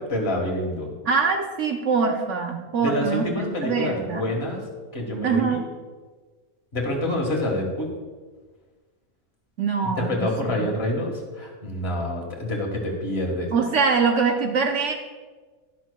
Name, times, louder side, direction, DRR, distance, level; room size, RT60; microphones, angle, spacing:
voice 1, 0.0-0.9 2.8-4.6 4.9-5.6 6.7-7.9 10.0-13.5, left 1 dB, 45° left, 1 dB, 1.8 m, -27 dB
voice 2, 1.0-4.3 5.2-5.6 9.6-10.7 13.5-14.9, right 5 dB, 60° right, 3 dB, 1.0 m, -24 dB
11.5 x 11.0 x 2.3 m, 1.4 s
omnidirectional pair, 1.5 m